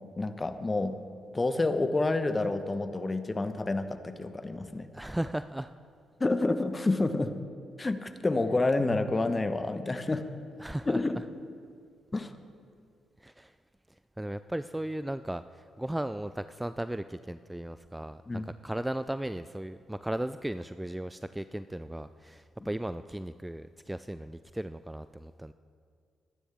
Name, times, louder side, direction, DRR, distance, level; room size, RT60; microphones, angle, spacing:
voice 1, 0.2-1.0 1.3-4.9 6.2-7.3 7.8-10.2 10.9-11.2 12.1-12.3 18.3-18.5, left 2 dB, 25° left, 9 dB, 1.1 m, -29 dB
voice 2, 4.9-5.7 10.6-11.0 13.2-13.6 14.2-25.5, right 1 dB, 10° right, 13 dB, 0.4 m, -36 dB
23.0 x 9.9 x 3.6 m, 2.3 s
hypercardioid pair, 40°, 0 cm